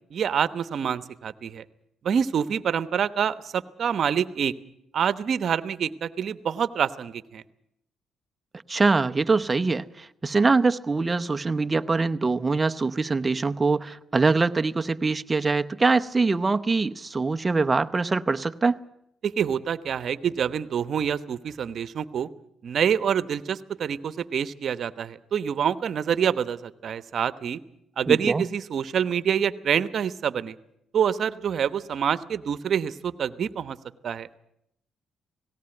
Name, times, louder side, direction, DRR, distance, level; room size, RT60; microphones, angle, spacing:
voice 1, 0.1-1.6 2.0-4.5 4.9-7.4 19.2-22.3 22.6-27.6 28.0-30.6 30.9-33.8 34.0-34.3, right 8 dB, 60° right, 14 dB, 1.0 m, -26 dB
voice 2, 8.7-18.8 28.1-28.4, right 3 dB, 25° right, 8 dB, 0.8 m, -23 dB
18.5 x 18.0 x 9.0 m, 0.77 s
cardioid pair, 90°, 0 cm